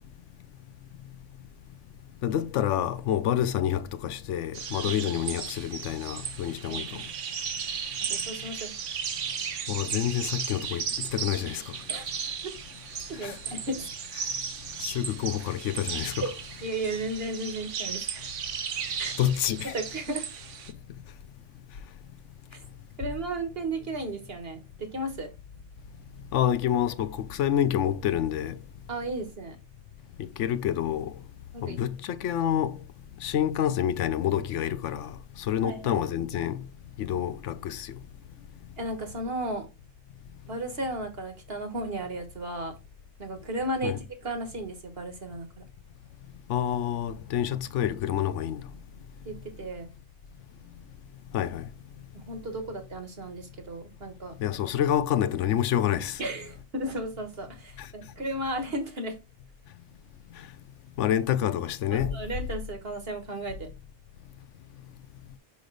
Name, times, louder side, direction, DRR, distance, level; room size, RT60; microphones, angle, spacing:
voice 1, 2.2-7.0 9.7-11.6 13.2-13.4 14.8-16.3 19.2-19.8 26.3-28.6 30.2-31.1 31.6-32.8 33.2-35.1 35.5-36.7 37.0-37.9 43.8-44.0 46.5-48.6 51.3-51.7 54.4-56.2 57.8-57.9 61.0-62.2, left 10 dB, 90° left, 0.9 m, -28 dB
sound 1, 4.5-20.7, right 7 dB, 90° right, 1.2 m, -35 dB
voice 2, 6.7-7.1 8.0-8.7 11.9-12.0 12.4-12.5 13.1-13.9 16.2-16.3 16.6-18.3 19.0-19.2 19.7-20.2 22.5-22.6 23.0-25.3 28.9-29.6 31.5-31.8 35.6-36.0 38.8-39.7 40.5-42.7 43.2-45.6 49.2-49.9 52.1-54.3 56.2-59.2 61.9-63.7, right 2 dB, 55° right, 1.6 m, -34 dB
5.4 x 5.1 x 3.9 m
omnidirectional pair, 1.2 m